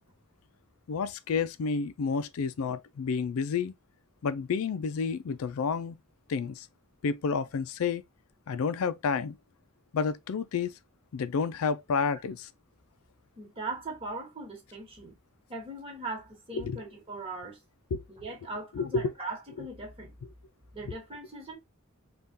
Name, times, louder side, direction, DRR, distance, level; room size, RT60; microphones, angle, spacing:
voice 1, 0.9-3.7 4.2-6.0 6.3-6.7 7.0-8.0 8.5-9.4 9.9-10.7 11.1-12.5 16.5-16.8 17.9-18.0 18.7-19.1 19.6-19.7, left 5 dB, 85° left, 0.4 m, -30 dB
voice 2, 13.4-15.2 15.5-17.6 18.1-20.1 20.7-21.6, right 2 dB, 25° right, 1.3 m, -40 dB
3.6 x 2.4 x 2.6 m
head